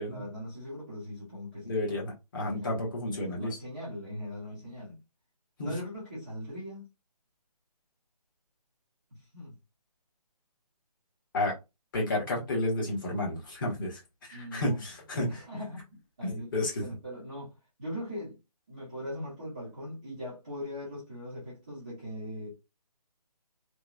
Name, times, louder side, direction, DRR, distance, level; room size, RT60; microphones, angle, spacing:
voice 1, 0.1-1.7 2.4-5.0 5.6-6.8 9.1-9.6 14.3-14.8 15.2-16.5 16.8-17.5 17.8-18.4 18.7-22.5, equal, 10° right, 0.3 m, -40 dB
voice 2, 1.6-3.6 5.6-5.7 11.3-11.5 11.9-14.0 14.3-15.4 16.2-16.8, left 1 dB, 30° left, 1.0 m, -31 dB
2.9 x 2.0 x 2.3 m
figure-of-eight pair, 155°, 20 cm